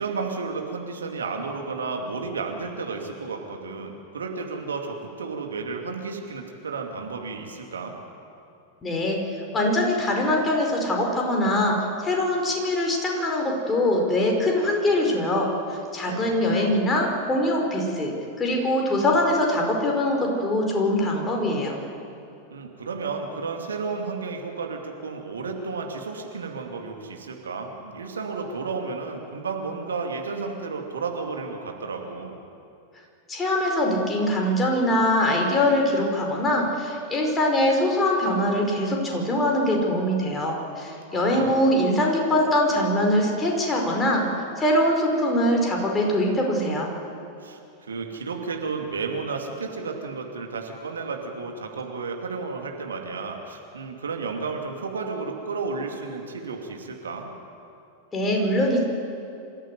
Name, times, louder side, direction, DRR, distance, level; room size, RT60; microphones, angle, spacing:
voice 1, 0.0-8.0 16.0-16.8 22.5-32.4 41.1-41.6 47.4-57.3, right 4 dB, 70° right, 2 dB, 2.5 m, -32 dB
voice 2, 8.8-9.2 9.5-21.8 33.3-44.2 44.6-46.9 58.1-58.8, left 1 dB, 20° left, 1 dB, 5.1 m, -23 dB
26.5 x 14.5 x 9.4 m, 2.6 s
figure-of-eight pair, 90°, 0 cm